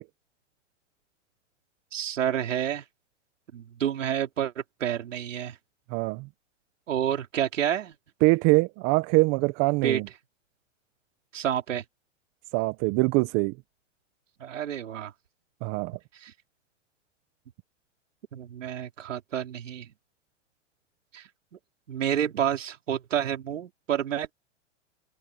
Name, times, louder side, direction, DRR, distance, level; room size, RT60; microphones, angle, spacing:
voice 1, 1.9-2.8 3.5-5.6 6.9-7.9 9.8-10.0 11.3-11.8 14.4-15.1 16.1-16.3 18.3-19.9 21.1-21.3 21.9-24.3, right 10 dB, 85° right, 4.9 m, -29 dB
voice 2, 5.9-6.3 8.2-10.1 12.5-13.5 15.6-16.0, right 24 dB, 40° right, 1.3 m, -23 dB
hypercardioid pair, 130°, 37 cm